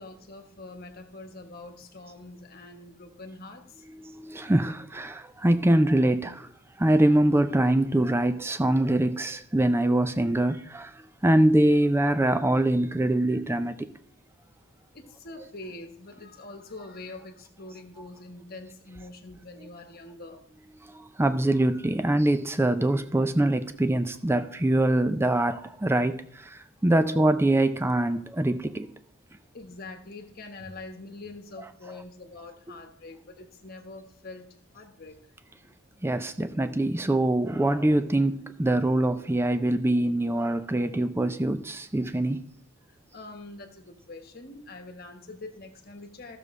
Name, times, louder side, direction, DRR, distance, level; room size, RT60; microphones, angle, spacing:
voice 1, 0.0-3.8 14.9-20.4 29.5-34.5 34.7-35.2 43.1-46.4, left 2 dB, 45° left, 5 dB, 1.2 m, -44 dB
voice 2, 3.9-6.5 6.8-13.9 20.8-28.9 36.0-42.5, right 1 dB, 10° right, 10 dB, 0.4 m, -24 dB
13.5 x 6.7 x 3.6 m, 0.67 s
head